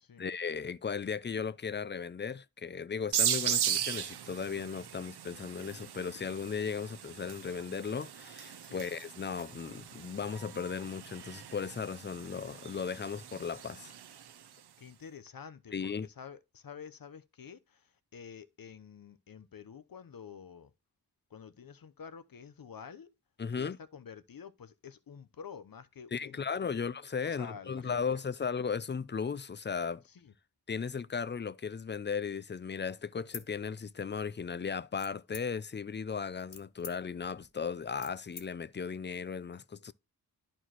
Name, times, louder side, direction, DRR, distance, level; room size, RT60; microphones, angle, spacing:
voice 1, 0.2-13.9 15.7-16.1 23.4-23.8 26.1-30.0 30.7-39.9, left 6 dB, 30° left, 0.4 m, -36 dB
sound 1, 3.1-14.5, right 9 dB, 80° right, 0.6 m, -37 dB
voice 2, 14.8-20.7 21.3-23.1 23.5-26.8 27.2-28.2 30.1-30.3, left 7 dB, 60° left, 0.8 m, -49 dB
sound 2, 33.3-34.3 35.0-35.8 36.2-38.5, left 6 dB, 80° left, 1.1 m, -48 dB
11.0 x 4.4 x 2.9 m
wide cardioid pair, 70°, 39 cm